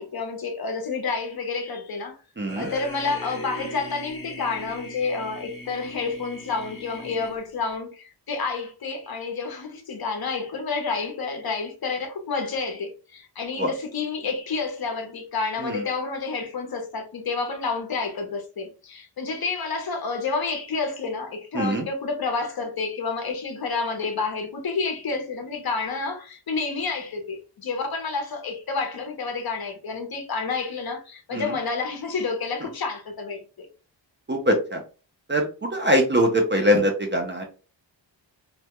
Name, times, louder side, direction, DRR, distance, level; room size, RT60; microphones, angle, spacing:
voice 1, 0.0-2.2 2.6-33.7, left 4 dB, 50° left, 0.7 m, -29 dB
voice 2, 2.4-2.7 13.6-13.7 15.6-15.8 21.5-21.9 31.3-31.5 34.3-34.8 35.3-37.4, equal, 25° right, 0.4 m, -22 dB
sound 1, 2.5-7.7, equal, 30° left, 0.9 m, -39 dB
2.2 x 2.1 x 2.8 m
wide cardioid pair, 135°, 46 cm